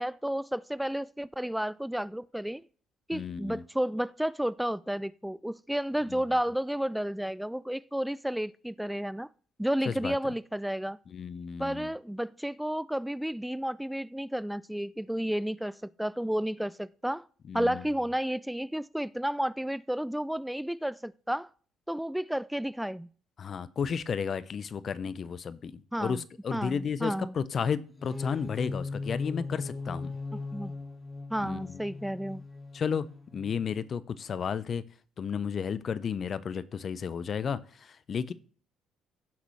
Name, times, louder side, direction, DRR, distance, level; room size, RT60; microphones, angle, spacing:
voice 1, 0.0-2.6 3.1-9.3 9.6-11.0 11.6-17.2 17.5-21.5 21.9-23.1 25.9-26.2 26.5-27.3 30.5-30.7 31.3-32.4, equal, 5° right, 0.3 m, -32 dB
voice 2, 3.1-3.6 6.1-6.2 9.8-10.1 11.1-11.9 17.5-17.8 23.4-30.1 31.4-31.8 32.7-34.8 35.2-38.3, left 6 dB, 50° left, 0.6 m, -33 dB
sound 1, 27.9-33.8, left 3 dB, 25° left, 2.2 m, -39 dB
15.0 x 6.0 x 3.2 m
hypercardioid pair, 55°, 0 cm